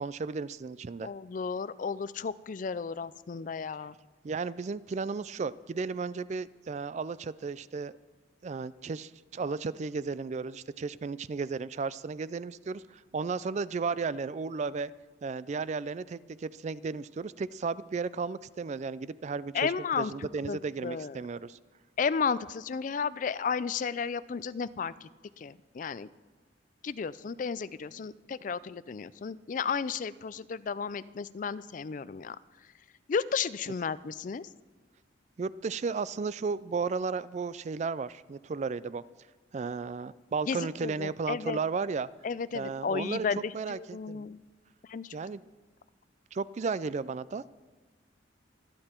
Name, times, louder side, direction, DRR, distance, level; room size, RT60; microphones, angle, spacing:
voice 1, 0.0-1.1 4.2-8.0 8.4-14.9 15.2-21.6 35.4-39.0 39.5-42.1 42.5-43.3 43.5-44.3 45.1-45.4 46.3-47.4, right 4 dB, 40° right, 18 dB, 0.3 m, -34 dB
voice 2, 1.0-3.9 19.5-20.1 20.4-21.2 22.0-24.9 25.4-26.1 26.8-32.4 33.1-34.5 40.5-41.6 42.2-44.4 44.9-45.1, left 6 dB, 45° left, 17 dB, 0.4 m, -33 dB
24.5 x 8.7 x 4.4 m, 1.4 s
head